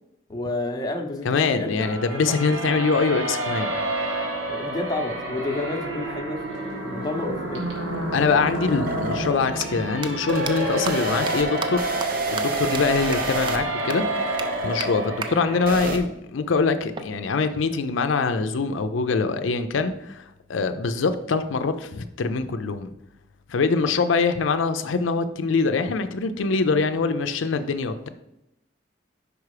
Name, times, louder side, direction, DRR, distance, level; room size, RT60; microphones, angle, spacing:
voice 1, 0.3-2.4 4.5-7.7, left 2 dB, 20° left, 3 dB, 0.7 m, -30 dB
voice 2, 1.2-3.7 8.1-11.9 12.3-14.0 14.6-20.2 20.5-22.9 23.5-28.1, left 4 dB, 90° left, 9 dB, 0.5 m, -24 dB
sound 1, 1.8-15.7, right 1 dB, 90° right, 1.8 m, -30 dB
sound 2, 7.0-16.0, right 1 dB, 50° right, 0.8 m, -29 dB
sound 3, 9.5-9.7 10.0-10.1 10.5-10.6 10.9-11.0 11.3-11.4 11.6-11.7 12.0-12.1 12.4-12.5 12.7-12.8 13.1-13.2 13.5-13.6 13.9-14.0 14.4-14.5 14.8-14.9 15.2-15.3 16.9-18.0, right 5 dB, 25° right, 0.4 m, -33 dB
5.0 x 4.8 x 4.8 m, 0.84 s
head